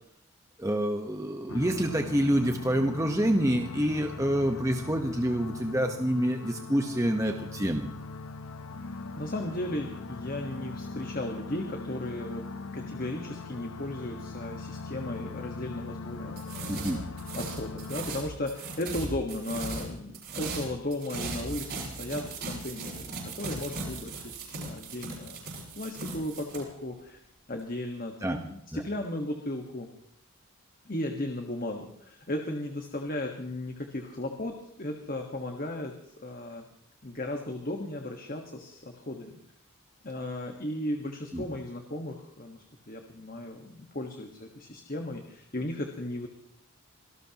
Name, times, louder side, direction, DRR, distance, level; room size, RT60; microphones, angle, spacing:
voice 1, 0.6-7.9 16.7-17.0 28.2-28.4 28.7-28.8 41.3-41.4, equal, 15° right, 3 dB, 1.1 m, -27 dB
sound 1, 1.5-18.0, left 3 dB, 75° left, 0.9 m, -40 dB
voice 2, 8.8-12.5 12.7-25.4 25.7-27.2 27.5-29.9 30.8-36.6 37.0-39.4 40.0-46.3, left 1 dB, 40° left, 3 dB, 1.5 m, -36 dB
sound 2, 16.4-19.9 20.1-26.6, right 3 dB, 50° right, 7.0 m, -38 dB
26.0 x 18.5 x 3.0 m, 0.71 s
head